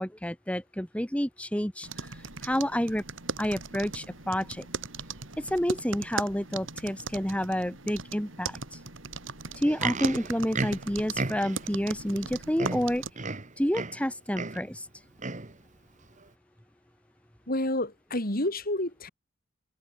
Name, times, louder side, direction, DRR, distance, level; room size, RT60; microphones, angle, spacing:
voice 1, 0.0-3.0 3.4-4.6 5.4-8.8 9.5-13.0 13.6-14.9, equal, 5° left, 3.3 m, -29 dB
sound 1, 1.8-13.1, right 4 dB, 85° right, 4.3 m, -39 dB
Livestock farm animals working animals, 9.5-11.7 12.3-12.4 12.6-14.1 14.3-14.7 15.2-15.5 16.2-16.3, right 3 dB, 40° right, 1.6 m, -33 dB
voice 2, 17.5-19.1, left 1 dB, 50° left, 5.9 m, -29 dB
head